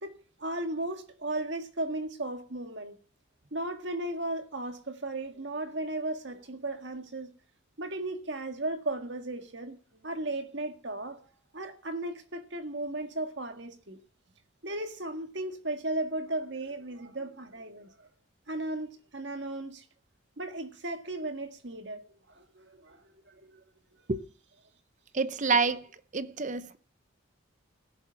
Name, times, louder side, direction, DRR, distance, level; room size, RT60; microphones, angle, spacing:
voice 1, 0.0-3.0 3.5-7.3 7.8-9.8 10.0-11.2 11.5-14.0 14.6-18.1 18.5-19.8 20.4-22.0 22.4-23.6, right 2 dB, 60° right, 1.9 m, -36 dB
voice 2, 25.1-25.9 26.1-26.8, right 4 dB, 40° right, 0.8 m, -27 dB
16.5 x 8.0 x 5.8 m
head